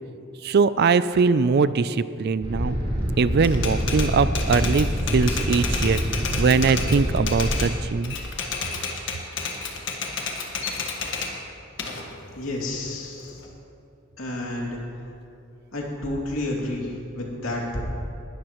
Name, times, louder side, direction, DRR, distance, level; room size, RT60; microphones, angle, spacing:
voice 1, 0.4-2.8 3.2-6.0 6.4-8.2, right 5 dB, 50° right, 15 dB, 0.4 m, -21 dB
sound 1, 2.4-7.6, equal, 30° right, 3.1 m, -26 dB
Typewriter, 3.4-7.7 8.0-11.3 11.8-13.4, left 5 dB, 65° left, 1.5 m, -31 dB
voice 2, 12.3-13.5 14.2-14.8 15.7-17.8, left 1 dB, 80° left, -2 dB, 2.6 m, -30 dB
19.5 x 12.5 x 3.1 m, 2.6 s
head